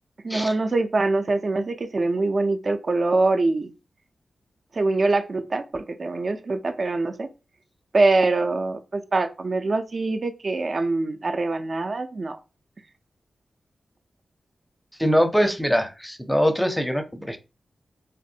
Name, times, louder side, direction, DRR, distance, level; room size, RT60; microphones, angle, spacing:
voice 1, 0.2-3.7 4.7-7.3 7.9-12.4, right 3 dB, 50° right, 7 dB, 0.4 m, -24 dB
voice 2, 15.0-17.4, equal, 5° left, 7 dB, 0.5 m, -22 dB
3.1 x 2.5 x 2.7 m, 0.30 s
cardioid pair, 65°, 0 cm